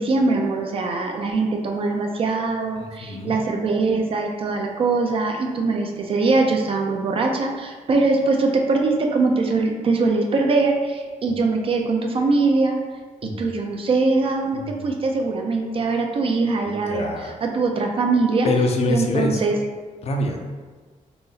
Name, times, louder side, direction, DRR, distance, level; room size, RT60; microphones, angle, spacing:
voice 1, 0.0-12.8 13.4-17.1 17.4-18.5 18.9-19.6, right 3 dB, 40° right, 2 dB, 0.4 m, -22 dB
voice 2, 3.0-3.3 11.3-11.4 13.2-13.5 14.5-14.9 16.6-17.3 18.4-19.4 20.0-20.6, left 2 dB, 50° left, 3 dB, 0.4 m, -25 dB
3.9 x 2.0 x 3.8 m, 1.4 s
cardioid pair, 140°, 14 cm